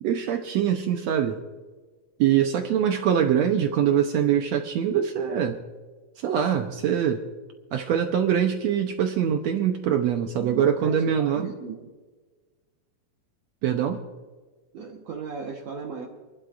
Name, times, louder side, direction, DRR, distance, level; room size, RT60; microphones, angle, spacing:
voice 1, 0.0-1.4 2.2-5.6 6.2-7.2 7.7-11.5 13.6-14.0, right 9 dB, 75° right, 5 dB, 1.6 m, -23 dB
voice 2, 10.4-11.9 14.7-16.1, right 5 dB, 60° right, -1 dB, 2.1 m, -37 dB
29.0 x 11.5 x 2.5 m, 1.4 s
omnidirectional pair, 4.0 m